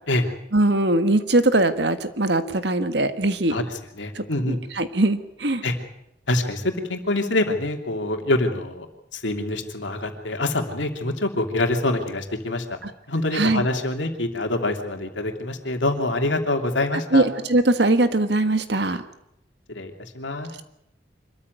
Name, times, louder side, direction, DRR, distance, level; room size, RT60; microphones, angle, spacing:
voice 1, 0.5-3.6 4.2-5.6 13.3-13.7 17.1-19.0, right 2 dB, 65° right, 10 dB, 1.6 m, -21 dB
voice 2, 3.5-4.6 5.6-5.8 6.3-12.8 13.1-17.3 19.7-20.5, left 2 dB, 80° left, 4 dB, 2.9 m, -25 dB
25.0 x 14.0 x 9.4 m, 0.83 s
head